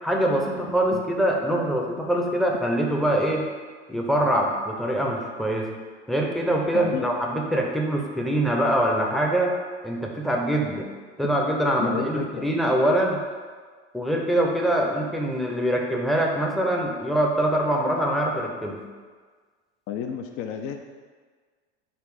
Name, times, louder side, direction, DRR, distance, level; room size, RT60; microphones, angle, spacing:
voice 1, 0.0-3.5 3.9-5.7 6.1-9.6 9.8-10.9 11.2-13.2 13.9-18.8, right 1 dB, ahead, -1 dB, 0.6 m, -24 dB
voice 2, 6.7-7.1 11.8-12.4 19.9-20.8, left 7 dB, 40° left, 5 dB, 0.4 m, -31 dB
4.1 x 2.7 x 4.7 m, 1.5 s
hypercardioid pair, 95°, 34 cm